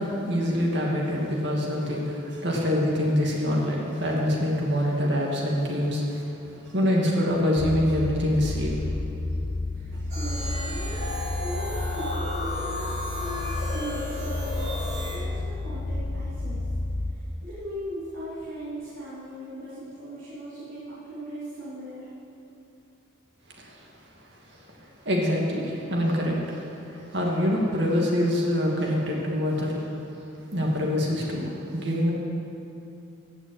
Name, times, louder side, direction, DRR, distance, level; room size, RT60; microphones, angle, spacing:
voice 1, 0.0-6.2 6.6-8.8 23.6-23.8 25.0-29.9 30.5-32.1, equal, 55° right, -2 dB, 2.5 m, -25 dB
sound 1, 7.6-17.1, left 2 dB, 70° left, 0.8 m, -31 dB
voice 2, 9.7-11.0 11.3-16.6 17.1-22.1, right 1 dB, 75° right, -11 dB, 3.1 m, -38 dB
sound 2, 10.1-15.2, right 1 dB, 35° right, 2.6 m, -38 dB
sound 3, 11.0-14.9, left 3 dB, 45° left, 1.1 m, -35 dB
15.5 x 6.2 x 9.0 m, 2.8 s
head